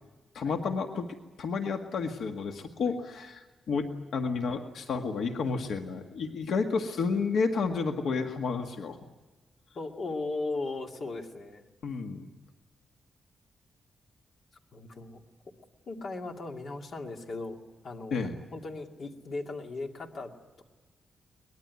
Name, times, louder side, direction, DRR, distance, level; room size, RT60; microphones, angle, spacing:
voice 1, 0.3-1.1 1.4-9.0 11.8-12.2 18.1-18.4, left 4 dB, 75° left, 5 dB, 1.7 m, -31 dB
voice 2, 9.7-11.6 14.7-15.2 15.9-17.6 17.8-20.3, left 3 dB, 45° left, 3 dB, 2.4 m, -37 dB
23.5 x 20.5 x 9.5 m, 1.2 s
wide cardioid pair, 175°, 0 cm